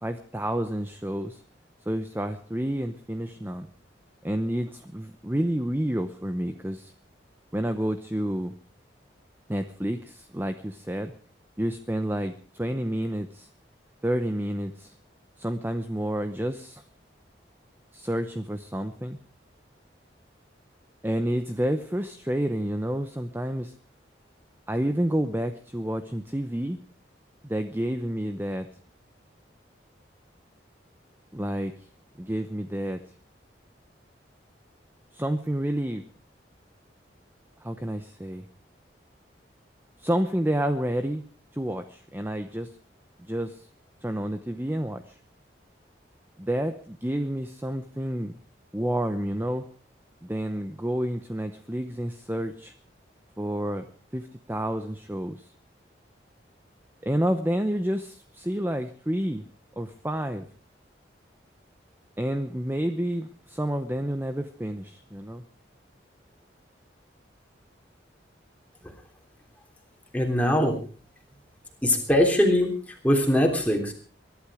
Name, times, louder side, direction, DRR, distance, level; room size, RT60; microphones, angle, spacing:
voice 1, 0.0-1.4 1.9-3.7 4.2-6.9 7.5-8.5 9.5-11.1 11.6-13.5 14.0-15.0 15.4-16.8 17.9-19.2 21.0-23.7 24.7-26.8 27.4-28.7 31.3-31.9 32.2-33.0 35.1-36.0 37.6-38.5 40.0-41.2 41.5-42.7 43.2-43.7 44.0-45.2 46.4-48.3 48.7-49.7 50.2-52.7 53.4-53.9 54.1-55.5 57.0-59.4 59.8-60.5 62.2-65.4, right 1 dB, 10° right, 8 dB, 0.8 m, -29 dB
voice 2, 70.1-70.8 71.8-72.7 73.0-73.9, left 1 dB, 10° left, 2 dB, 3.4 m, -21 dB
22.5 x 12.0 x 5.0 m, 0.41 s
head